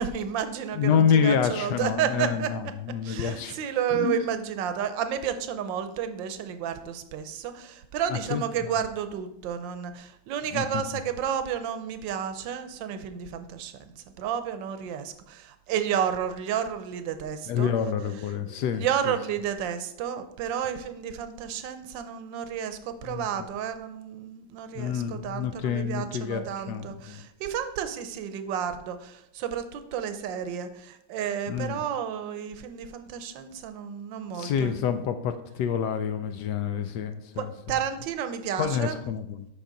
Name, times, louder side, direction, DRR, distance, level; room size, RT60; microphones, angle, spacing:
voice 1, 0.0-2.5 3.0-17.7 18.5-34.9 37.4-39.0, right 8 dB, 75° right, 9 dB, 1.3 m, -31 dB
voice 2, 0.7-3.6 3.9-4.3 8.1-8.7 10.5-10.8 17.5-19.1 23.0-23.3 24.7-27.2 31.5-31.8 34.3-37.5 38.6-39.5, left 7 dB, 75° left, 9 dB, 1.0 m, -28 dB
8.2 x 5.8 x 3.9 m, 0.82 s
omnidirectional pair, 2.2 m